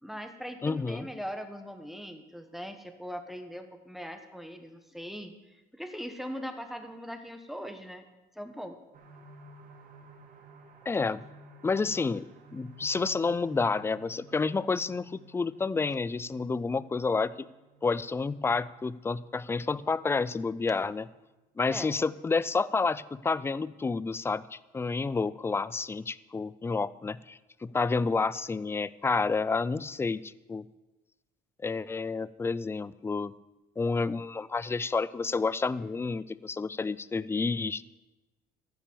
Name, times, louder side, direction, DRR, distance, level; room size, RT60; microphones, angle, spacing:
voice 1, 0.0-8.1 8.3-8.8 21.7-21.9, equal, ahead, 7 dB, 1.1 m, -40 dB
voice 2, 0.6-1.1 10.9-11.2 11.6-12.3 12.5-17.3 17.8-21.1 21.6-30.7 31.6-33.3 33.8-37.8, left 4 dB, 15° left, 18 dB, 0.4 m, -30 dB
sound 1, 8.9-22.4 22.9-23.0 23.4-23.5, right 2 dB, 55° right, 2.2 m, -54 dB
14.5 x 6.0 x 6.9 m, 1.1 s
cardioid pair, 110°, 17 cm